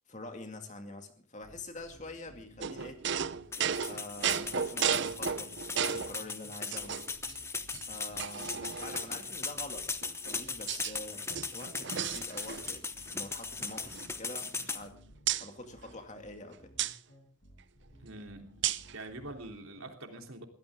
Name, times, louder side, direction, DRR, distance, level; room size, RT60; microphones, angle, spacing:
voice 1, 0.1-3.0 3.9-7.1 7.9-9.9 10.2-15.0 15.4-16.7, left 2 dB, 35° left, 5 dB, 2.4 m, -46 dB
sound 1, 1.4-19.9, equal, 50° left, 7.8 m, -58 dB
sound 2, 2.6-6.2 6.7-7.3 7.7-7.8 8.2-9.2 10.0-11.0 11.2-12.8 13.1-13.3 13.6-14.9 15.3-15.5 16.8-17.0 18.6-19.0, right 8 dB, 55° right, 0.7 m, -34 dB
sound 3, 3.5-14.8, left 4 dB, 10° left, 0.9 m, -38 dB
voice 2, 18.0-18.6 18.9-20.4, right 2 dB, 70° right, 4 dB, 3.3 m, -45 dB
23.0 x 16.0 x 3.7 m, 0.42 s
head